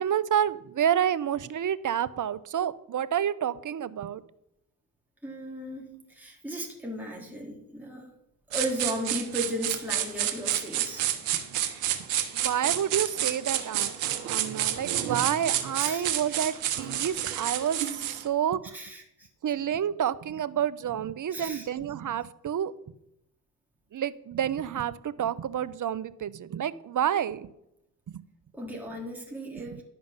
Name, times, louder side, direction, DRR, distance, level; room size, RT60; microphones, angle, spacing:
voice 1, 0.0-4.2 12.3-14.0 14.2-18.6 19.4-22.7 23.9-27.5 28.1-28.2, right 9 dB, 40° right, 16 dB, 0.7 m, -29 dB
voice 2, 5.2-8.1 8.5-11.0 15.8-16.1 18.7-19.3 21.3-21.7 28.5-29.8, equal, 5° right, -2 dB, 3.4 m, -35 dB
sound 1, 8.5-18.3, right 11 dB, 80° right, 1.0 m, -30 dB
11.0 x 5.1 x 7.4 m, 0.80 s
hypercardioid pair, 40°, 47 cm